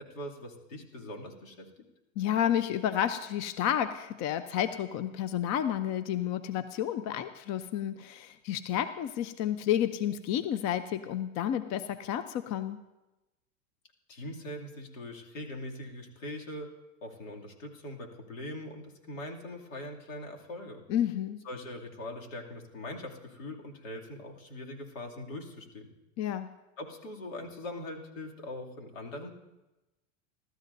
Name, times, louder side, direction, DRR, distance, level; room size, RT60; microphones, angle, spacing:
voice 1, 0.0-1.9 14.1-16.7 17.0-20.8 21.4-25.9 26.8-29.3, left 1 dB, 85° left, 0 dB, 2.8 m, -42 dB
voice 2, 2.2-12.8 20.9-21.4 26.2-26.5, left 10 dB, 45° left, 11 dB, 0.7 m, -31 dB
29.0 x 13.0 x 2.7 m, 1.0 s
hypercardioid pair, 105°, 38 cm